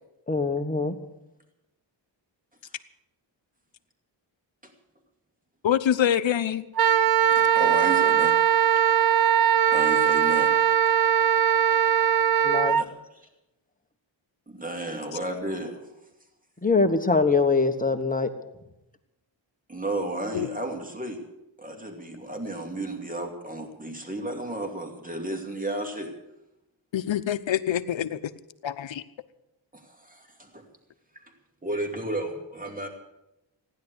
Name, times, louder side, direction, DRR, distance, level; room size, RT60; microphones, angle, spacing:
voice 1, 0.3-0.9 12.4-12.8 16.6-18.3, left 4 dB, 15° left, 6 dB, 1.3 m, -23 dB
voice 2, 5.6-6.6 20.3-20.5 26.9-28.2 28.6-29.0, left 10 dB, 70° left, 13 dB, 0.9 m, -25 dB
Wind instrument woodwind instrument, 6.7-12.8, right 9 dB, 50° right, 0.6 m, -20 dB
voice 3, 7.3-8.3 8.7-9.1 9.7-10.8 12.6-13.3 14.5-15.9 19.7-21.2 21.6-26.1 29.7-30.7 31.6-32.9, right 1 dB, 15° right, 4 dB, 2.6 m, -33 dB
15.5 x 10.5 x 8.1 m, 0.90 s
wide cardioid pair, 110°, 47 cm